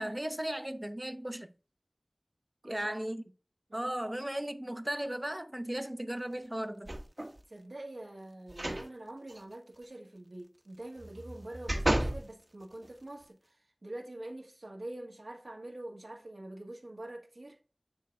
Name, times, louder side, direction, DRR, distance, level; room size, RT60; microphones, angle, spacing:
voice 1, 0.0-1.5 2.6-3.2 3.7-7.0, right 1 dB, 20° right, 0.7 m, -36 dB
voice 2, 2.6-3.0 3.7-3.9 7.5-17.6, right 1 dB, 85° right, 1.7 m, -45 dB
sound 1, 6.9-7.4 8.5-8.9 9.3-9.4 11.0-12.2 12.8-12.9, right 1 dB, 45° right, 1.1 m, -32 dB
9.5 x 4.0 x 3.4 m
wide cardioid pair, 40°, 0 cm